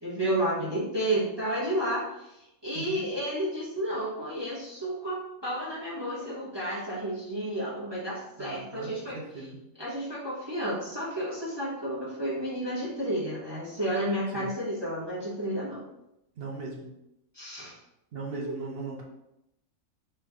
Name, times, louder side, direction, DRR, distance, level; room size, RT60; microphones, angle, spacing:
voice 1, 0.0-9.5 9.8-15.8 17.3-17.7 18.4-18.5, right 1 dB, 20° right, -8 dB, 0.9 m, -31 dB
voice 2, 8.4-9.6 14.3-14.5 16.4-16.9 18.1-19.0, right 3 dB, 55° right, -1 dB, 0.7 m, -38 dB
3.3 x 3.1 x 3.5 m, 0.86 s
omnidirectional pair, 1.5 m